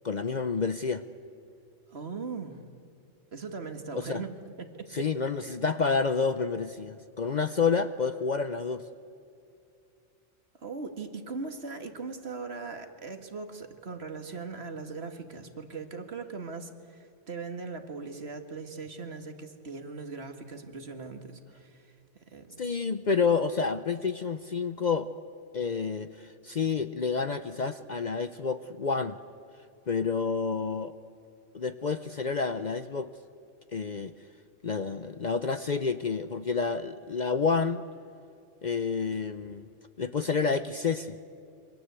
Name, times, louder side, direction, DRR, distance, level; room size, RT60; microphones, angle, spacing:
voice 1, 0.0-1.0 3.9-4.2 4.9-8.8 22.6-25.1 25.5-29.2 29.9-30.9 31.5-33.1 33.7-34.1 34.6-37.8 38.6-39.7 40.0-41.2, left 5 dB, 45° left, 11 dB, 0.7 m, -29 dB
voice 2, 1.9-2.6 3.3-4.3 4.6-5.1 10.6-21.9 22.3-22.5, right 4 dB, 55° right, 6 dB, 2.1 m, -39 dB
27.5 x 24.0 x 8.2 m, 2.5 s
omnidirectional pair, 1.3 m